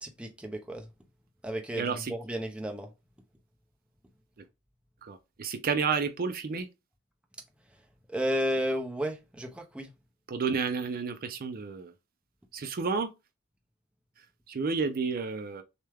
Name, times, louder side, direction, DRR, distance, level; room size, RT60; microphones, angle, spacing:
voice 1, 0.0-0.9 1.4-2.9 8.1-9.9, equal, 5° right, 0.7 m, -32 dB
voice 2, 1.8-2.1 5.0-6.7 10.3-11.9 12.5-13.1 14.5-15.6, right 5 dB, 45° right, 0.5 m, -31 dB
6.5 x 2.2 x 3.4 m
head